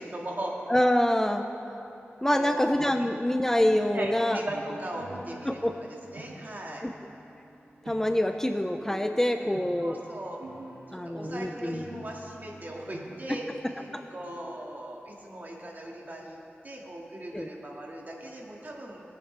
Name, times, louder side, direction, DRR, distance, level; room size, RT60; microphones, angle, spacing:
voice 1, 0.0-0.6 2.3-2.7 3.8-6.9 9.8-10.4 10.9-16.4 16.6-19.0, right 1 dB, 45° right, -2 dB, 2.0 m, -38 dB
voice 2, 0.7-1.4 2.2-4.4 5.5-5.7 6.8-6.9 7.9-10.0 10.9-11.9 13.9-14.0 17.3-17.5, left 1 dB, 10° left, 6 dB, 0.5 m, -26 dB
sound 1, 2.4-3.3 3.5-8.0 8.7-14.4, right 1 dB, 80° right, 2.2 m, -47 dB
20.5 x 8.8 x 3.4 m, 3.0 s
cardioid pair, 55°, 4 cm